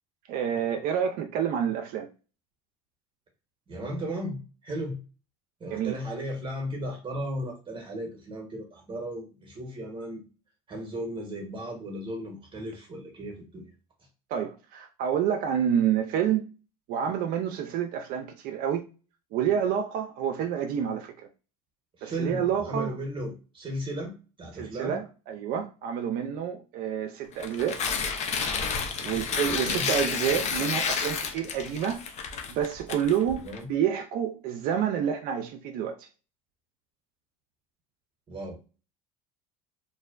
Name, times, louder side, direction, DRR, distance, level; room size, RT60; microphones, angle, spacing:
voice 1, 0.3-2.1 5.7-6.0 14.3-16.4 16.9-18.8 19.3-21.3 22.0-23.0 24.6-27.8 29.0-32.0 32.5-33.4 33.7-36.1, right 9 dB, 55° right, 0.4 m, -28 dB
voice 2, 3.7-5.0 5.6-10.2 10.7-13.7 22.0-25.0 29.4-29.9 33.4-33.7 38.3-38.5, equal, 30° right, 0.9 m, -35 dB
Tearing, 27.3-33.6, left 5 dB, 40° left, 0.6 m, -30 dB
2.5 x 2.0 x 2.4 m
hypercardioid pair, 80°, 18 cm